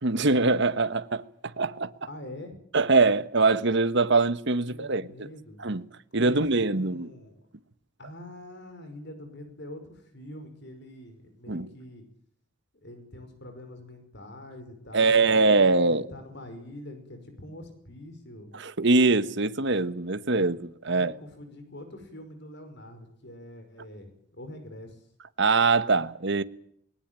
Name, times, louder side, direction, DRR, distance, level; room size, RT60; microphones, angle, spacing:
voice 1, 0.0-1.9 2.7-5.0 5.6-5.8 6.1-7.1 11.5-11.7 14.9-16.1 18.5-21.1 25.4-26.4, right 3 dB, 60° right, 1.3 m, -23 dB
voice 2, 2.1-2.6 4.6-5.6 6.2-6.5 6.7-7.4 8.0-12.0 12.8-18.5 20.9-25.0, left 1 dB, 55° left, 5.3 m, -44 dB
21.0 x 19.5 x 9.0 m
head